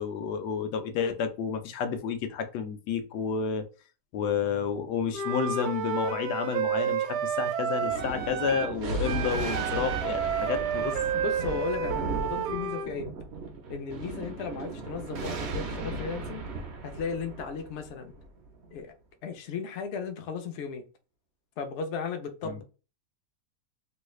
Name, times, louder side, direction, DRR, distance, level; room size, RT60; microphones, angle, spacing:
voice 1, 0.0-3.6 4.1-11.0 22.4-22.6, left 6 dB, 85° left, 1.2 m, -30 dB
Wind instrument woodwind instrument, 5.1-8.8 9.0-12.9, right 7 dB, 80° right, 1.2 m, -30 dB
Thunder, 7.9-18.7, right 3 dB, 65° right, 0.7 m, -36 dB
voice 2, 11.1-13.1 13.7-16.4 16.8-18.1 18.7-18.9 19.2-20.8 21.6-22.6, left 5 dB, 65° left, 0.7 m, -35 dB
3.2 x 2.3 x 3.0 m
omnidirectional pair, 1.7 m